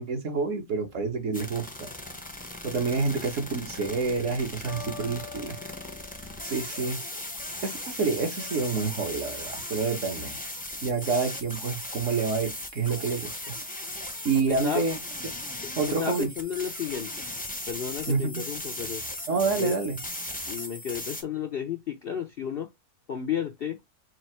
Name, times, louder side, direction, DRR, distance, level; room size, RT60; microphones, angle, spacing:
voice 1, 0.0-1.9 2.6-5.6 6.4-7.0 7.6-10.4 10.8-13.5 14.2-15.0 15.8-16.3 18.1-18.4 19.3-20.0, right 4 dB, 55° right, 1.4 m, -28 dB
sound 1, 1.3-21.2, left 1 dB, 10° left, 0.6 m, -38 dB
sound 2, 4.7-7.5, left 6 dB, 75° right, 1.6 m, -45 dB
voice 2, 14.3-14.9 15.6-15.7 16.0-17.1 17.7-19.0 19.6-19.8 20.5-22.7 23.1-23.8, left 8 dB, 55° left, 0.6 m, -32 dB
4.7 x 2.5 x 4.4 m
omnidirectional pair, 1.6 m